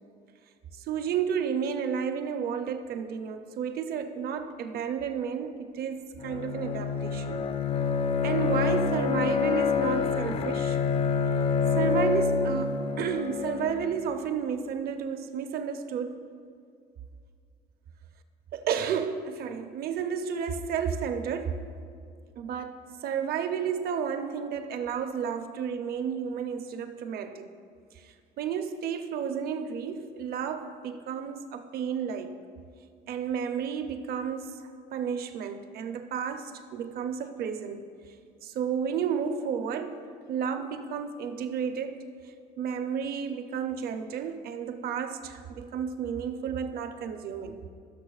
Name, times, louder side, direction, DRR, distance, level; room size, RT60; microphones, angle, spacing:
voice 1, 0.8-7.4 8.2-10.8 11.8-16.2 18.5-21.6 22.4-27.5 28.0-32.4 33.1-34.6 34.9-37.9 38.4-40.0 40.3-42.0 42.6-47.7, right 7 dB, 65° right, 0.7 m, -32 dB
Bowed string instrument, 6.2-14.0, left 5 dB, 35° left, 0.4 m, -27 dB
16.5 x 6.4 x 2.4 m
cardioid pair, 110°, 17 cm